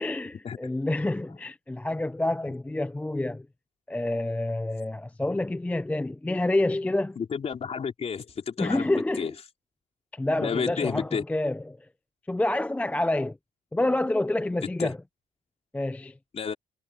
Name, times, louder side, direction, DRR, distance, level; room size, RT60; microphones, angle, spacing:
voice 1, 0.0-3.5 3.9-7.2 8.6-9.3 10.1-11.8 12.3-13.4 13.7-15.0 15.7-16.1, left 2 dB, 10° left, 0.6 m, -28 dB
voice 2, 7.2-8.9 9.2-9.3 10.4-11.2 14.8-14.9 16.3-16.5, left 6 dB, 35° left, 3.8 m, -30 dB
cardioid pair, 110°, 17 cm